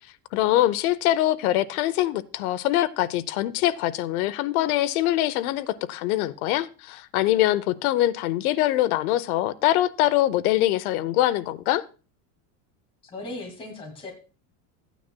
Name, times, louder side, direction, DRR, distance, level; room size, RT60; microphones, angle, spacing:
voice 1, 0.3-11.8, left 14 dB, 85° left, 0.8 m, -23 dB
voice 2, 13.0-14.1, left 2 dB, 15° left, 2.0 m, -37 dB
14.5 x 9.2 x 2.2 m
cardioid pair, 170°, 42 cm